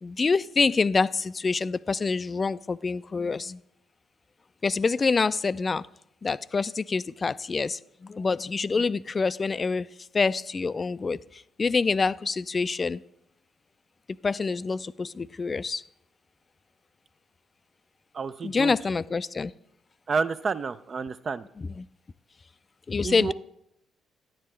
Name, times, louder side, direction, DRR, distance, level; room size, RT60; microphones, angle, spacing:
voice 1, 0.0-3.6 4.6-5.9 6.2-9.9 10.1-13.0 14.2-15.8 18.4-19.5 21.6-21.9 22.9-23.3, left 4 dB, 35° left, 17 dB, 0.3 m, -26 dB
voice 2, 18.1-18.8 20.1-21.4 23.0-23.3, right 5 dB, 45° right, 12 dB, 0.4 m, -29 dB
10.0 x 10.0 x 3.2 m, 0.78 s
figure-of-eight pair, 45°, 0 cm